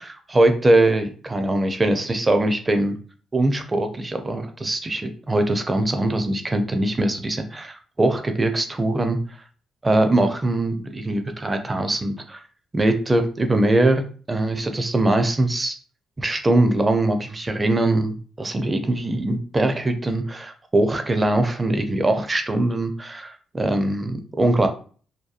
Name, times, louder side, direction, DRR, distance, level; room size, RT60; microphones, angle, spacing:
voice 1, 0.0-3.0 3.3-9.2 9.8-12.4 12.7-15.8 16.2-24.7, right 2 dB, 20° right, 7 dB, 0.4 m, -22 dB
2.7 x 2.2 x 2.4 m, 0.42 s
cardioid pair, 90°, 0 cm